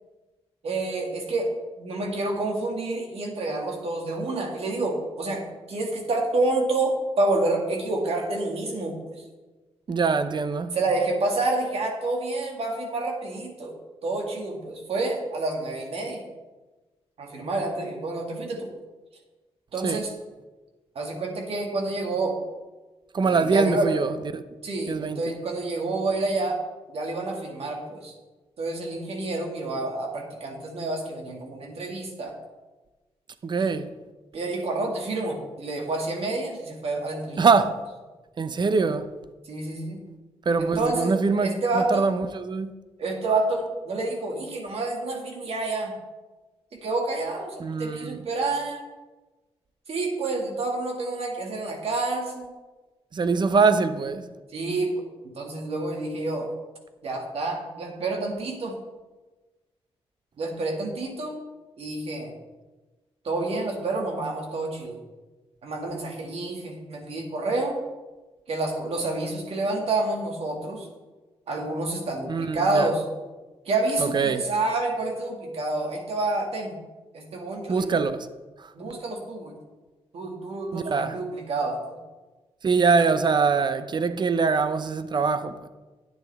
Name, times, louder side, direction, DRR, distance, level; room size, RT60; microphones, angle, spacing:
voice 1, 0.6-1.5 1.8-9.2 10.7-13.7 14.0-16.2 17.2-18.7 19.7-20.1 21.0-22.4 23.2-23.9 24.6-26.6 26.9-28.2 28.6-32.4 34.3-37.5 39.4-40.0 40.6-41.1 41.4-42.1 43.0-45.9 46.8-48.9 49.9-52.5 54.5-56.5 57.0-58.8 60.4-61.4 61.8-62.3 63.2-65.0 65.6-67.8 68.5-70.9 71.5-73.0 73.7-76.7 77.1-78.0 78.7-79.5 80.1-82.0, right 2 dB, 65° right, 2.2 m, -28 dB
voice 2, 9.9-10.7 19.8-20.0 23.1-24.4 24.9-25.2 33.4-33.9 37.4-37.7 38.4-39.1 40.5-42.7 47.6-48.2 53.1-54.2 72.3-72.9 74.0-74.4 77.7-78.3 78.6-78.7 80.7-81.2 82.6-85.7, right 4 dB, 45° right, 0.7 m, -23 dB
11.0 x 9.4 x 3.6 m
cardioid pair, 95°, 11 cm